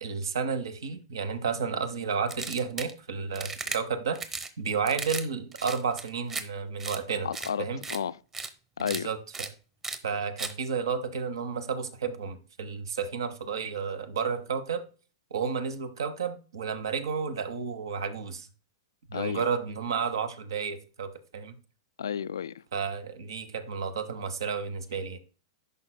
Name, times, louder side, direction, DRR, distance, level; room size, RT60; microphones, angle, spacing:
voice 1, 0.0-4.2 4.6-7.3 7.6-7.8 8.8-9.5 10.0-14.8 15.3-18.5 19.1-21.5 22.7-25.2, right 6 dB, 75° right, 1.0 m, -32 dB
sound 1, 2.3-2.9 3.3-3.8 4.1-4.5 4.9-5.2 5.5-6.4 6.8-7.0 7.3-7.5 7.8-8.0 8.3-8.5 8.8-9.0 9.3-9.5 9.8-10.0 10.4-10.5, right 4 dB, 15° right, 0.9 m, -35 dB
voice 2, 7.2-8.2 8.8-9.1 19.1-19.5 22.0-22.6, left 8 dB, 75° left, 0.3 m, -32 dB
11.0 x 5.2 x 2.2 m
hypercardioid pair, 110°, 2 cm